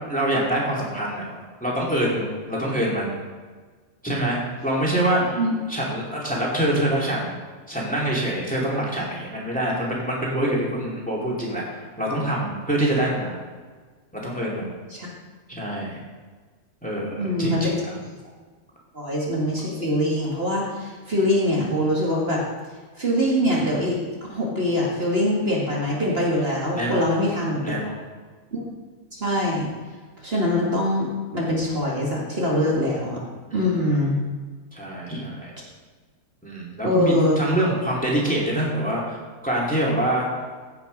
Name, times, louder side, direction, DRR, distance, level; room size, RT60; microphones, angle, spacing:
voice 1, 0.1-1.2 1.6-3.2 4.0-5.4 5.7-7.3 7.7-13.4 14.1-14.7 15.5-16.0 16.8-17.9 26.7-27.1 27.6-27.9 33.5-33.7 34.7-35.5 36.4-40.3, right 1 dB, 5° left, -5 dB, 2.5 m, -25 dB
voice 2, 17.2-17.7 18.9-22.4 23.0-24.0 24.3-27.7 28.5-28.7 29.1-29.7 30.2-33.2 33.5-34.2 36.8-37.4, left 1 dB, 40° right, -4 dB, 2.1 m, -23 dB
15.5 x 5.8 x 5.2 m, 1.5 s
omnidirectional pair, 1.6 m